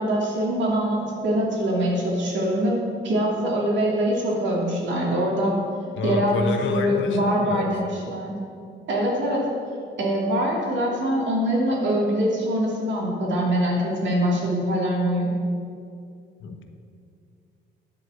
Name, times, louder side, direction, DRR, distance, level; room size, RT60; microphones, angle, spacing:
voice 1, 0.0-5.6 6.0-8.3 8.9-9.5 10.0-15.3, equal, 65° right, -3 dB, 2.8 m, -23 dB
voice 2, 6.0-7.9 16.4-16.6, left 4 dB, 75° left, 5 dB, 1.1 m, -28 dB
10.5 x 5.0 x 7.9 m, 2.4 s
cardioid pair, 90°, 20 cm